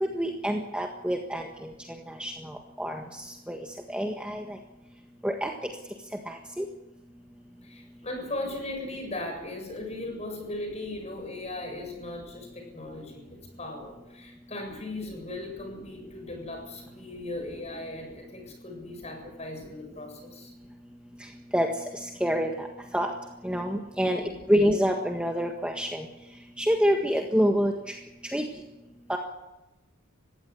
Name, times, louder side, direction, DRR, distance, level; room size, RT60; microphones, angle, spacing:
voice 1, 0.0-1.7 2.1-3.0 3.5-3.6 3.9-4.6 5.2-5.5 6.3-6.6 21.5-21.7 22.2-22.7 22.9-23.1 23.4-24.2 24.5-26.1 26.6-28.0 28.3-28.4 29.1-29.2, equal, 5° right, 2 dB, 1.6 m, -26 dB
voice 2, 7.6-20.5 24.1-24.4, left 2 dB, 30° left, 3 dB, 7.6 m, -38 dB
20.5 x 16.0 x 9.9 m, 0.96 s
head